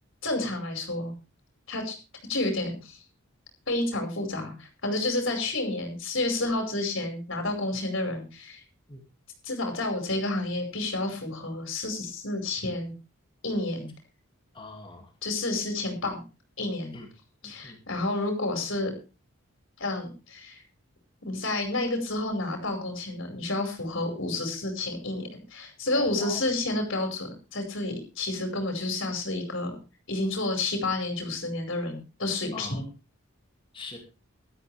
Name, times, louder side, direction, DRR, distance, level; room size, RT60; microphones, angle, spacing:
voice 1, 0.2-1.1 1.7-2.0 2.3-3.0 3.7-8.6 9.4-12.9 13.4-13.9 15.2-16.2 16.6-16.9 17.4-18.9 19.8-20.6 21.3-29.8 30.1-32.8, left 2 dB, 60° left, 4 dB, 5.2 m, -30 dB
voice 2, 14.5-15.1 16.9-17.1 17.4-17.8 25.9-26.4 32.5-32.8 33.7-34.0, left 3 dB, 20° left, 3 dB, 2.3 m, -42 dB
17.0 x 13.0 x 3.4 m, 0.30 s
head